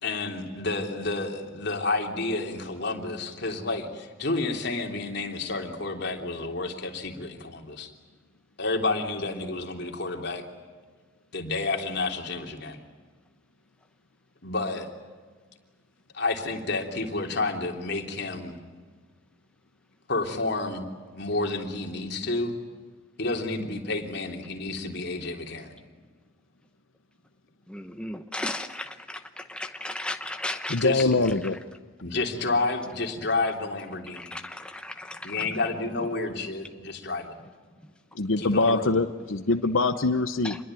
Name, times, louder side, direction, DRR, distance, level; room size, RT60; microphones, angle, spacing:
voice 1, 0.0-7.9 8.6-10.4 11.3-12.8 14.4-14.9 16.1-18.6 20.1-20.9 21.1-22.6 23.2-25.8 30.8-31.3 32.0-34.4 35.2-37.3 38.4-38.9, left 3 dB, 55° left, 2 dB, 3.4 m, -30 dB
voice 2, 27.7-30.8 34.1-35.6 40.4-40.6, left 1 dB, 5° left, 6 dB, 0.9 m, -35 dB
voice 3, 30.7-31.6 38.1-40.6, left 3 dB, 80° left, 9 dB, 1.0 m, -24 dB
27.5 x 21.5 x 9.2 m, 1.4 s
head